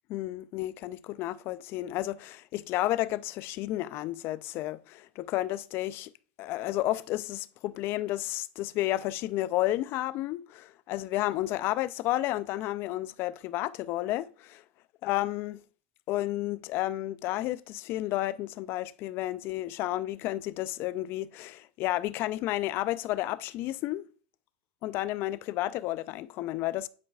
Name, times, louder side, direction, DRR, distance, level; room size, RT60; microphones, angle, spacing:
voice 1, 0.1-6.1 6.4-14.6 15.0-15.6 16.1-24.0 24.8-26.9, left 15 dB, 50° left, 0.4 m, -31 dB
10.5 x 4.7 x 2.4 m
hypercardioid pair, 115°, 5 cm